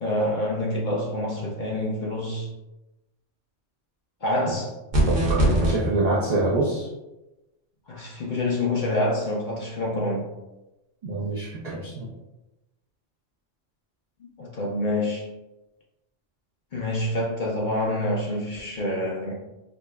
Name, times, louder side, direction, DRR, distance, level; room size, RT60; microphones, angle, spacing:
voice 1, 0.0-2.5 4.2-4.7 7.9-10.3 14.4-15.3 16.7-19.3, left 1 dB, 55° left, -3 dB, 0.5 m, -27 dB
sound 1, 4.9-5.7, right 1 dB, 50° right, 1.0 m, -20 dB
voice 2, 5.1-6.9 11.0-12.1, right 2 dB, 70° right, -4 dB, 0.4 m, -25 dB
4.9 x 2.1 x 2.2 m, 1.0 s
omnidirectional pair, 1.3 m